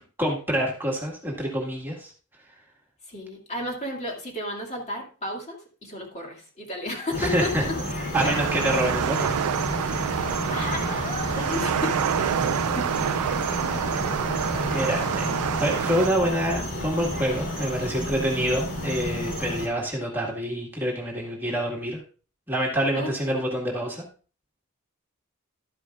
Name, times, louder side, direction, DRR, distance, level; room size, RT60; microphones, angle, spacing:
voice 1, 0.2-2.1 7.1-7.6 8.1-9.3 14.7-15.2 15.6-22.0 22.5-24.0, equal, 10° right, -2 dB, 1.8 m, -26 dB
voice 2, 3.1-7.7 8.2-8.3 10.0-12.9 13.3-13.9 22.9-23.4, left 1 dB, 30° left, 0 dB, 2.3 m, -34 dB
sound 1, 7.1-19.7, left 1 dB, 55° left, 4.1 m, -31 dB
sound 2, 8.1-16.1, right 9 dB, 85° right, 0.4 m, -27 dB
12.5 x 9.9 x 2.5 m, 0.37 s
head